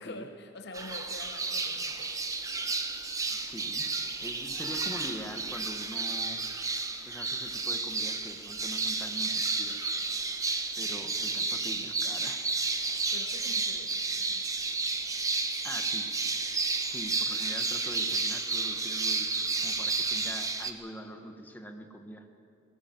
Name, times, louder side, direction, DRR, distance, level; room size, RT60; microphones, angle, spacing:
voice 1, 0.0-2.2 13.1-14.8, left 2 dB, 60° left, 6 dB, 1.0 m, -46 dB
sound 1, 0.7-20.7, right 3 dB, 15° right, 1.0 m, -32 dB
voice 2, 3.3-3.9 4.2-6.4 7.1-9.9 10.8-12.5 15.6-16.1 16.9-22.3, equal, 10° left, 4 dB, 1.4 m, -44 dB
19.0 x 18.0 x 7.8 m, 2.6 s
head